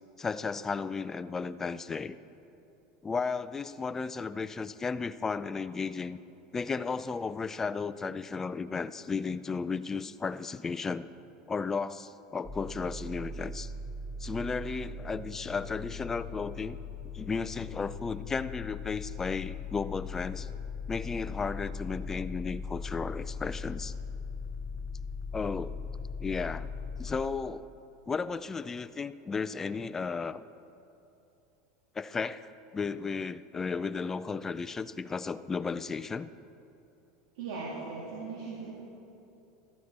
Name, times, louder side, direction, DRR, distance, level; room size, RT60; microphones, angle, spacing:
voice 1, 0.2-2.2 3.0-6.2 6.5-11.1 11.5-13.7 14.2-16.8 17.1-20.5 20.9-23.9 25.3-25.8 26.2-26.7 27.0-27.7 28.1-30.4 32.0-36.3, left 5 dB, 15° left, 14 dB, 0.3 m, -34 dB
sound 1, 12.4-27.1, left 4 dB, 5° right, 1.1 m, -39 dB
voice 2, 37.3-38.7, right 4 dB, 75° right, -5 dB, 2.4 m, -38 dB
14.5 x 13.0 x 4.2 m, 2.8 s
supercardioid pair, 145°, 3 cm